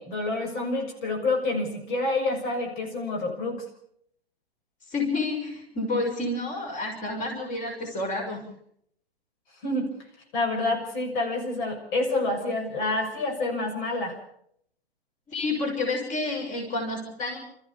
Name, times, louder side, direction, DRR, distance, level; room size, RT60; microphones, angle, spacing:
voice 1, 0.0-3.6 9.6-9.9 10.3-14.2, left 2 dB, 50° left, 3 dB, 6.7 m, -28 dB
voice 2, 4.9-8.4 15.3-17.4, left 2 dB, 25° left, 2 dB, 6.2 m, -29 dB
28.0 x 14.5 x 7.1 m, 0.69 s
figure-of-eight pair, 110°, 31 cm